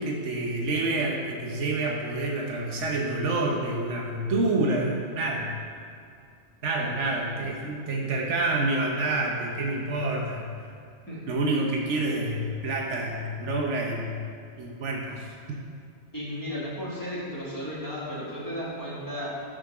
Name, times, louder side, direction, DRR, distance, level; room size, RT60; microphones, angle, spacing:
voice 1, 0.0-5.5 6.6-10.5 11.3-14.2 14.6-15.6, right 2 dB, 90° right, -1 dB, 1.2 m, -28 dB
voice 2, 6.8-7.2 11.1-11.2 16.1-19.4, equal, 15° left, -8 dB, 1.6 m, -34 dB
6.3 x 3.7 x 6.0 m, 2.5 s
omnidirectional pair, 1.2 m